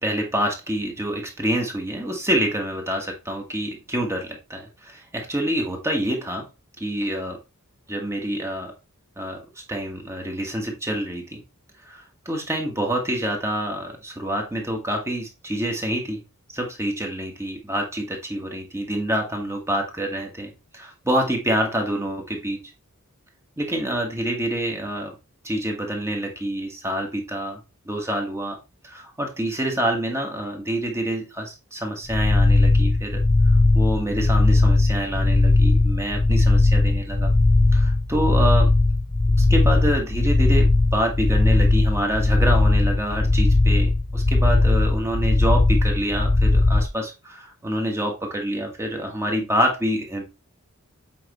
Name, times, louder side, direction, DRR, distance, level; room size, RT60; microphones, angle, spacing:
voice 1, 0.0-6.5 6.8-7.4 7.9-8.7 9.2-9.4 9.7-11.4 11.8-16.2 16.5-22.6 23.6-25.1 25.4-27.6 27.8-28.6 28.8-37.3 37.7-38.7 39.4-50.3, right 1 dB, 10° right, 2 dB, 1.6 m, -27 dB
sound 1, 32.1-46.9, left 2 dB, 30° left, 0.7 m, -18 dB
7.6 x 5.0 x 3.1 m, 0.27 s
head